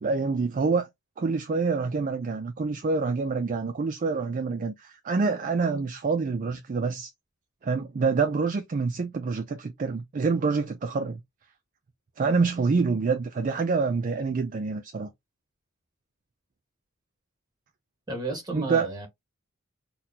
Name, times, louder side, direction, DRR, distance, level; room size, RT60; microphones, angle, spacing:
voice 1, 0.0-0.9 1.2-7.1 7.6-11.2 12.2-15.1 18.5-18.9, right 4 dB, 40° right, 0.4 m, -26 dB
voice 2, 18.1-19.1, right 2 dB, 20° right, 1.5 m, -33 dB
4.1 x 2.2 x 2.8 m
head